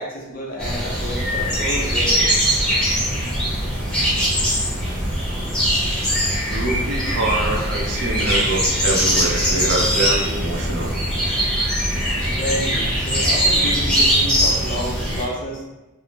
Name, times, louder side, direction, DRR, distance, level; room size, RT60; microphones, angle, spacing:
voice 1, 0.0-2.4 12.3-15.6, equal, 40° left, -2 dB, 0.5 m, -30 dB
sound 1, 0.6-15.2, equal, 5° left, 0.8 m, -21 dB
voice 2, 6.5-10.9, right 2 dB, 55° right, -1 dB, 0.5 m, -25 dB
3.4 x 2.0 x 2.7 m, 1.0 s
head